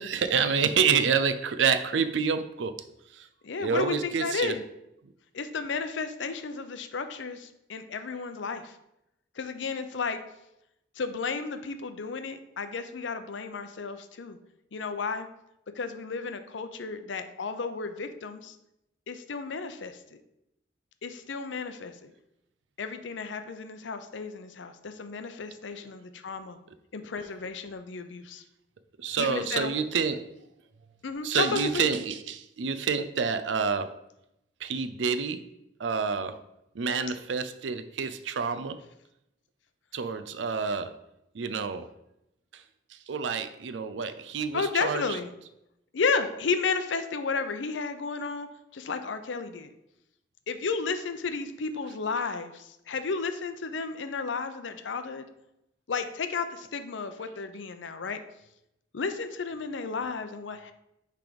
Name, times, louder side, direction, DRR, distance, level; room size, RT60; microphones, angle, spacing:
voice 1, 0.0-2.7 3.1-3.3 3.6-4.5 29.0-30.2 31.2-33.9 34.6-35.4 35.8-36.4 36.8-38.8 39.9-40.9 41.3-41.9 42.5-42.6 43.1-45.0, right 6 dB, 75° right, 10 dB, 0.5 m, -28 dB
voice 2, 3.4-4.6 5.3-8.8 9.4-10.2 11.0-14.4 14.7-15.3 15.8-18.5 19.1-20.0 21.0-22.1 22.8-26.6 26.9-28.4 29.2-29.7 31.0-31.9 44.5-45.3 45.9-48.5 48.7-49.7 50.5-55.3 55.9-58.2 58.9-60.7, left 4 dB, 80° left, 9 dB, 0.6 m, -33 dB
6.0 x 3.4 x 5.0 m, 0.84 s
head